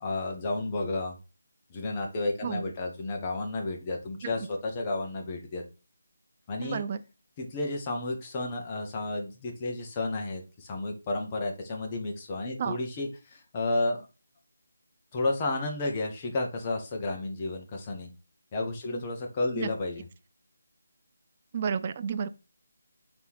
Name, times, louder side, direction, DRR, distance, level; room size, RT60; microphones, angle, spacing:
voice 1, 0.0-1.1 1.7-5.6 6.5-6.8 7.4-14.1 15.1-18.1 18.5-20.0, left 2 dB, 20° left, 0.9 m, -32 dB
voice 2, 6.6-7.0 12.6-12.8 18.9-19.0 19.6-19.7 21.5-22.3, right 6 dB, 30° right, 0.3 m, -31 dB
4.4 x 2.9 x 3.4 m
figure-of-eight pair, 170°, 0 cm